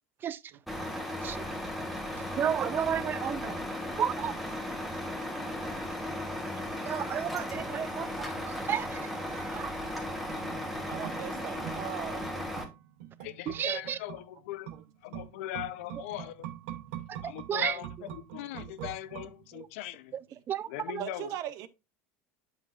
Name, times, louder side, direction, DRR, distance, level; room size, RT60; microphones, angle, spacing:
voice 1, 0.5-0.9 2.1-2.3 10.6-12.3 14.7-14.8 20.3-20.4 21.0-21.7, right 12 dB, 55° right, 0.8 m, -42 dB
Truck, 0.7-12.7, left 1 dB, ahead, 1.3 m, -36 dB
voice 2, 2.2-3.6 4.0-4.3 6.8-9.8 13.5-14.0 17.1-18.1 18.8-18.9 19.5-19.7 20.1-21.0, right 9 dB, 30° right, 0.5 m, -33 dB
sound 1, 10.3-19.8 20.1-20.2, right 11 dB, 85° right, 0.8 m, -44 dB
voice 3, 13.2-14.7 15.0-16.5 17.2-20.2 20.7-21.3, left 14 dB, 85° left, 0.6 m, -40 dB
8.1 x 5.6 x 2.5 m
supercardioid pair, 135°, 7 cm